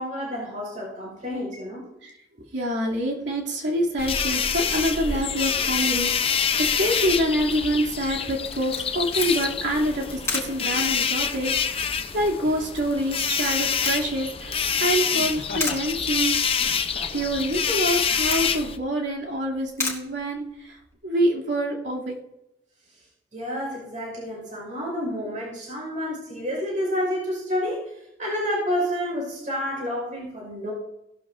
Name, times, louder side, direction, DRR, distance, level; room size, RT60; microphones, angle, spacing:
voice 1, 0.0-1.9 23.3-27.8 28.2-30.7, equal, 45° right, -1 dB, 4.8 m, -29 dB
voice 2, 2.5-16.7 17.1-22.1, equal, 80° right, -3 dB, 2.7 m, -26 dB
sound 1, 4.0-18.8, left 6 dB, 30° left, 0.6 m, -26 dB
Camera, 8.4-20.9, left 4 dB, 15° left, 1.6 m, -37 dB
Laughter, 12.4-12.8 15.1-15.9 16.5-17.3 18.1-18.2, left 3 dB, 50° left, 1.3 m, -40 dB
16.5 x 12.0 x 2.6 m, 0.85 s
head